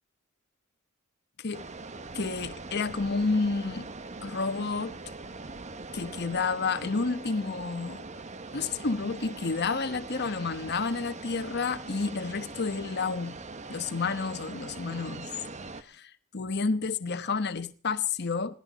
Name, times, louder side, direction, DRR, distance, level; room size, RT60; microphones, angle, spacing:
sound 1, 1.5-15.8, right 3 dB, 35° right, 1.2 m, -42 dB
voice 1, 2.1-3.9 4.2-5.0 5.9-8.1 8.5-13.4 13.7-15.3 15.8-18.6, left 4 dB, 55° left, 1.1 m, -30 dB
21.5 x 16.0 x 4.2 m
head